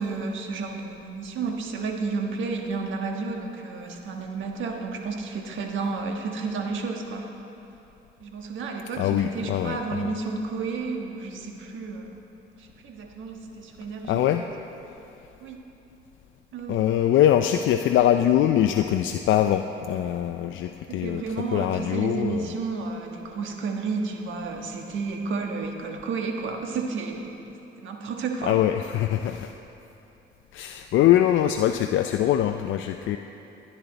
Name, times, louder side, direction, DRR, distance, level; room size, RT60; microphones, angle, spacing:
voice 1, 0.0-7.3 8.2-12.1 12.6-14.5 15.4-15.6 16.5-16.8 20.9-28.6, right 4 dB, 75° right, 2 dB, 1.4 m, -31 dB
voice 2, 9.0-10.1 14.0-14.4 16.7-21.2 21.5-22.5 28.4-29.5 30.5-33.2, left 11 dB, 75° left, 6 dB, 0.5 m, -23 dB
17.0 x 10.5 x 4.0 m, 2.9 s
cardioid pair, 90°, 20 cm